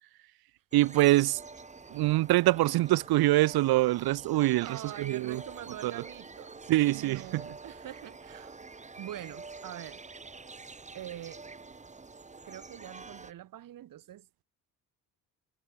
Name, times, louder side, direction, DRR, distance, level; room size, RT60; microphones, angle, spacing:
sound 1, 0.7-13.3, right 4 dB, 20° right, 5.8 m, -47 dB
voice 1, 0.7-1.4 1.9-5.4 5.8-5.9 6.7-7.4, right 17 dB, 75° right, 1.4 m, -24 dB
voice 2, 4.6-6.6 6.9-8.6 9.0-10.0 10.9-11.4 12.4-14.4, right 12 dB, 60° right, 4.4 m, -44 dB
cardioid pair, 130°, 37 cm